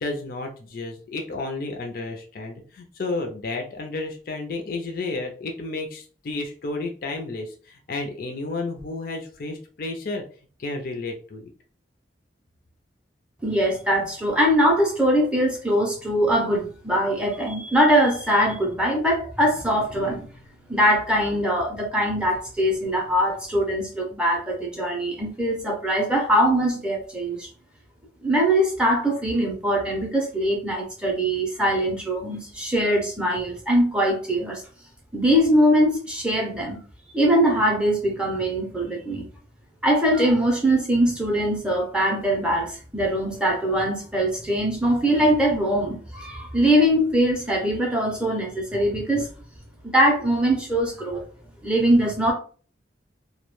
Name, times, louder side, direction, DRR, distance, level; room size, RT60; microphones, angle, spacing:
voice 1, 0.0-10.2 10.6-11.5, left 3 dB, 50° left, 3 dB, 0.4 m, -32 dB
voice 2, 13.4-20.3 20.7-27.5 28.2-34.6 35.1-36.8 37.1-39.3 39.8-49.3 49.8-51.2 51.6-52.3, equal, 5° right, -1 dB, 0.5 m, -22 dB
2.2 x 2.1 x 3.0 m, 0.40 s
head